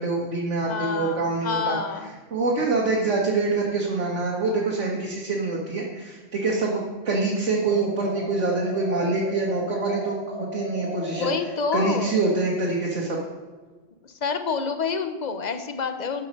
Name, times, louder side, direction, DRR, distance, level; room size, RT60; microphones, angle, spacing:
voice 1, 0.0-1.8 2.3-11.3 11.7-13.2, right 3 dB, 85° right, -4 dB, 1.7 m, -25 dB
voice 2, 0.6-2.1 11.1-12.1 14.0-16.3, left 5 dB, 45° left, 8 dB, 0.8 m, -28 dB
sound 1, 7.6-12.5, left 1 dB, 80° left, 2.8 m, -36 dB
12.5 x 5.6 x 5.3 m, 1.3 s
omnidirectional pair, 1.2 m